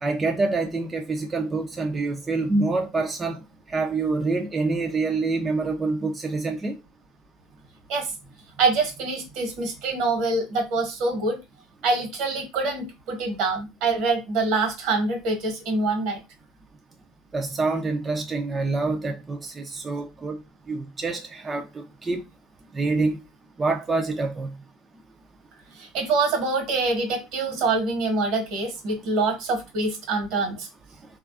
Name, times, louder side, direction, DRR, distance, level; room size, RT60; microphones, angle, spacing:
voice 1, 0.0-3.4 3.7-6.8 17.3-20.4 20.7-22.2 22.7-23.2 23.6-24.6 27.5-27.6, right 3 dB, 25° right, 0.4 m, -26 dB
voice 2, 8.6-11.4 11.8-16.2 25.7-30.7, right 3 dB, 70° right, 1.0 m, -25 dB
3.2 x 2.3 x 2.4 m
supercardioid pair, 95°, 0 cm